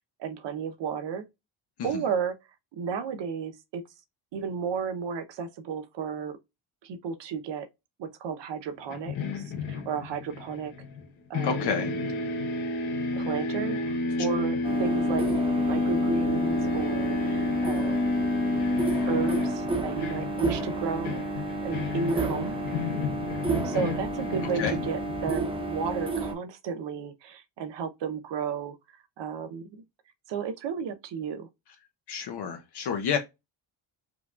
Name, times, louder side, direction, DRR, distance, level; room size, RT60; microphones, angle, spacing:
voice 1, 0.2-1.2 1.8-2.4 2.7-3.8 4.3-6.4 6.8-7.7 8.0-10.7 11.3-11.8 13.1-15.3 15.7-18.3 19.1-22.6 23.6-28.8 29.2-29.8 30.3-31.5, right 6 dB, 65° right, 0.9 m, -33 dB
sound 1, 8.9-11.1 11.3-25.3, left 3 dB, 85° left, 1.3 m, -30 dB
voice 2, 11.4-11.9 24.6-24.8 32.1-33.2, left 7 dB, 60° left, 0.9 m, -29 dB
sound 2, 14.6-26.3, right 3 dB, 10° right, 0.7 m, -31 dB
4.9 x 2.3 x 2.4 m
cardioid pair, 110°, 46 cm